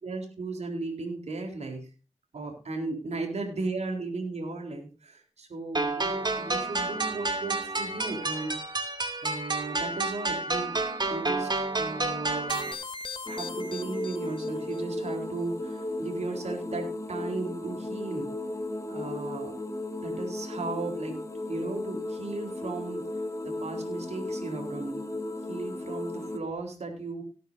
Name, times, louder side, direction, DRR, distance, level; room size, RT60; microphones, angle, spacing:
voice 1, 0.0-1.9 2.3-8.5 9.2-10.8 11.1-11.5 11.8-12.7 13.3-18.3 18.9-19.5 20.0-23.1 23.4-25.0 25.5-27.2, right 3 dB, 75° right, 3 dB, 3.9 m, -36 dB
sound 1, 5.8-12.8, right 3 dB, 40° right, 2.5 m, -30 dB
sound 2, 12.5-14.8, left 4 dB, 50° left, 1.5 m, -40 dB
sound 3, 13.3-26.4, left 1 dB, 30° left, 1.7 m, -35 dB
18.5 x 9.3 x 2.7 m, 0.35 s
cardioid pair, 55°, 11 cm